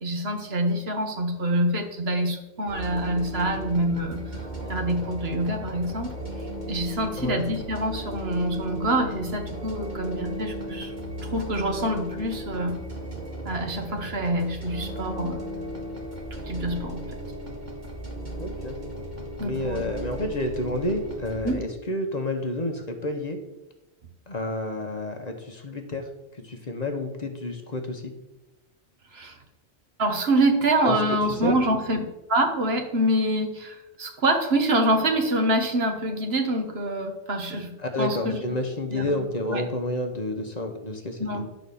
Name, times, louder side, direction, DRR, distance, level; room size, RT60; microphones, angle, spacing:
voice 1, 0.0-4.4 4.7-6.1 6.7-10.9 11.2-12.8 13.4-15.4 16.4-17.1 19.4-19.8 21.4-21.6 29.1-29.4 30.0-37.7 38.0-38.4 38.9-39.2 39.5-39.6 41.2-41.5, right 1 dB, 65° right, 4 dB, 1.4 m, -26 dB
sound 1, 2.7-21.5, right 1 dB, 40° right, 1.9 m, -36 dB
voice 2, 18.4-18.8 19.4-23.4 24.3-28.1 30.8-31.6 37.8-41.4, left 1 dB, 40° left, 4 dB, 1.0 m, -30 dB
11.0 x 4.1 x 6.9 m, 1.0 s
omnidirectional pair, 1.1 m